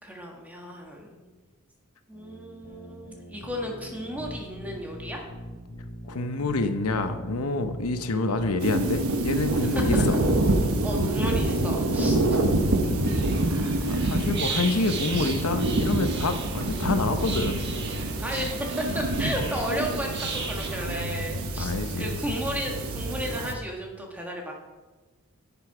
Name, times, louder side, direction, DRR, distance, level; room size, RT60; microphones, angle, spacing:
voice 1, 0.0-1.3 2.1-5.2 9.7-10.0 10.8-12.4 12.8-13.2 13.5-13.9 18.2-18.6 18.9-21.7 22.0-24.5, equal, 5° right, 0 dB, 1.5 m, -34 dB
sound 1, 2.1-12.1, equal, 30° left, 3.4 m, -41 dB
voice 2, 6.1-10.2 12.0-12.1 13.8-17.7 21.6-22.2, left 3 dB, 85° left, 8 dB, 0.8 m, -27 dB
sound 2, 8.6-23.5, right 2 dB, 75° right, 1.0 m, -27 dB
sound 3, 13.0-20.7, right 4 dB, 50° right, 1.3 m, -36 dB
10.5 x 7.0 x 4.8 m, 1.3 s
head